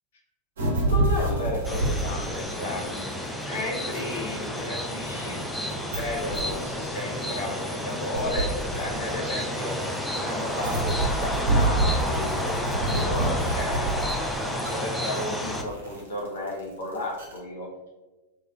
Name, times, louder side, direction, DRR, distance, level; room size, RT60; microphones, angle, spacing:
sound 1, 0.6-17.4, right 2 dB, 65° right, 0.9 m, -28 dB
voice 1, 0.7-3.0 3.4-5.4 5.9-9.7 10.1-10.9 11.2-13.9 14.5-17.7, left 1 dB, 55° left, -3 dB, 0.8 m, -33 dB
sound 2, 1.6-15.6, equal, 5° left, 0.4 m, -31 dB
3.2 x 2.8 x 2.4 m, 1.2 s
figure-of-eight pair, 90°, 0 cm